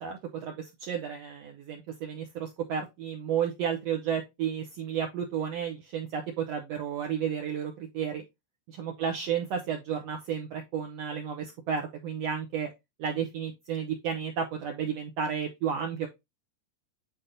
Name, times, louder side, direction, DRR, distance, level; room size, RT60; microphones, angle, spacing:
voice 1, 0.0-8.2 8.7-12.7 13.0-16.1, right 8 dB, 90° right, 3 dB, 1.4 m, -32 dB
9.3 x 3.9 x 2.7 m, 0.21 s
omnidirectional pair, 4.0 m